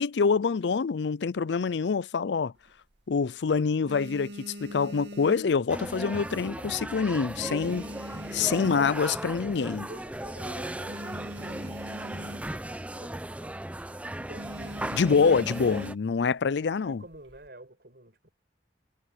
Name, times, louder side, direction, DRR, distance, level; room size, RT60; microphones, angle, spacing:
voice 1, 0.0-2.5 3.1-7.9 8.3-9.9 14.9-17.0, left 5 dB, 75° left, 0.5 m, -26 dB
sound 1, 2.6-3.3 3.7-6.2 6.5-6.8 7.1-9.4 9.8-9.9 10.1-10.2 10.6-12.8 13.1-13.3 13.6-13.9 14.4-16.2 16.9-17.5, equal, 75° right, 2.2 m, -43 dB
sound 2, 5.7-16.0, right 1 dB, 10° right, 0.7 m, -37 dB
voice 2, 9.9-13.6 13.8-15.1 16.8-18.3, right 1 dB, 60° right, 7.8 m, -50 dB
head